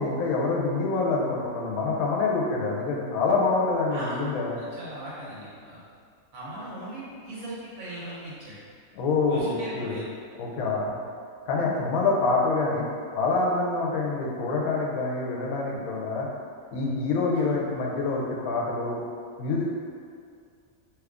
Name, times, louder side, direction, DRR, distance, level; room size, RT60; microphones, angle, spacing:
voice 1, 0.0-4.6 8.9-10.0 10.4-11.0 11.5-12.9 13.1-16.3 16.7-19.0 19.4-19.7, left 3 dB, 85° left, -2 dB, 1.0 m, -26 dB
voice 2, 4.6-5.8 6.3-8.6 9.2-10.1, right 1 dB, 75° right, -8 dB, 1.3 m, -39 dB
2.9 x 2.4 x 3.4 m, 2.2 s
omnidirectional pair, 1.5 m